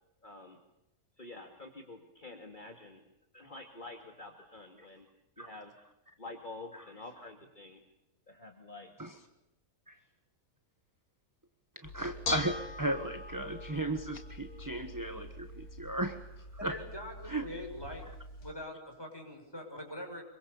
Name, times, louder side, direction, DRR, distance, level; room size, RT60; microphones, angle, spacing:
voice 1, 0.2-0.6 1.2-3.0 3.3-5.0 5.4-5.8 6.2-7.8 8.3-8.9, left 2 dB, 35° left, 3 dB, 2.4 m, -48 dB
voice 2, 11.7-16.8 17.2-17.5, right 1 dB, 15° right, 8 dB, 1.4 m, -36 dB
Bell / Dishes pots and pans, 11.8-18.5, left 2 dB, 85° left, 2.6 m, -42 dB
voice 3, 16.6-18.0 18.4-20.2, left 1 dB, 15° left, 2 dB, 6.8 m, -43 dB
26.5 x 23.5 x 7.1 m, 0.89 s
omnidirectional pair, 1.5 m